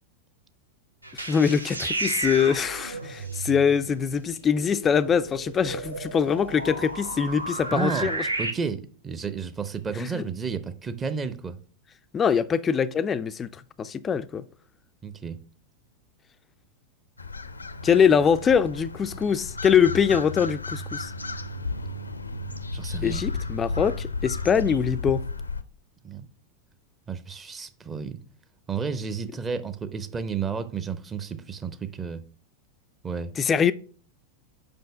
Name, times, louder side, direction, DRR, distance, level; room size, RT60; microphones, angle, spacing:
sound 1, 1.0-8.5, right 2 dB, 85° right, 0.9 m, -33 dB
voice 1, 1.1-8.3 10.0-10.2 12.1-13.5 13.8-14.4 17.8-21.1 23.0-25.2 33.4-33.7, left 7 dB, 20° left, 0.4 m, -23 dB
voice 2, 7.7-11.6 15.0-15.4 22.7-23.2 26.0-26.3 27.1-28.2 28.7-32.2 33.0-33.3, right 6 dB, 20° right, 0.7 m, -32 dB
sound 2, 17.2-25.6, left 3 dB, 80° left, 0.6 m, -33 dB
5.6 x 5.3 x 5.5 m
figure-of-eight pair, 90°, 0 cm